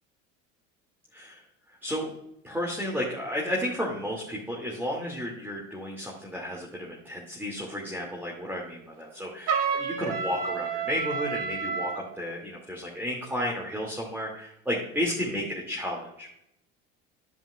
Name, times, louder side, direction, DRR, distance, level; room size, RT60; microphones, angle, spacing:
voice 1, 1.1-2.1 2.4-16.5, equal, 5° right, -3 dB, 2.2 m, -33 dB
Trumpet, 9.5-12.0, right 5 dB, 55° right, 1.7 m, -29 dB
10.5 x 8.2 x 2.3 m, 0.79 s
hypercardioid pair, 70°, 38 cm